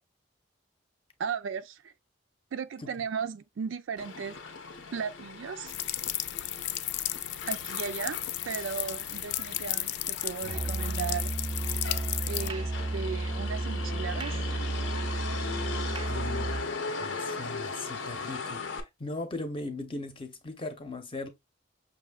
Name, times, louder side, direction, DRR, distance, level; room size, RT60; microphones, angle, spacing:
voice 1, 1.2-1.9 2.5-4.4 4.9-5.7 7.5-8.2 8.5-11.3 12.3-14.6, right 6 dB, 85° right, 0.4 m, -36 dB
Motor vehicle (road), 4.0-18.8, left 4 dB, 80° left, 0.8 m, -39 dB
sound 1, 5.7-12.5, left 14 dB, 65° left, 0.3 m, -34 dB
Musical instrument, 10.4-16.7, right 2 dB, 25° right, 0.4 m, -32 dB
voice 2, 16.0-16.5 17.0-21.3, left 2 dB, 30° left, 0.7 m, -38 dB
5.9 x 2.7 x 2.3 m
head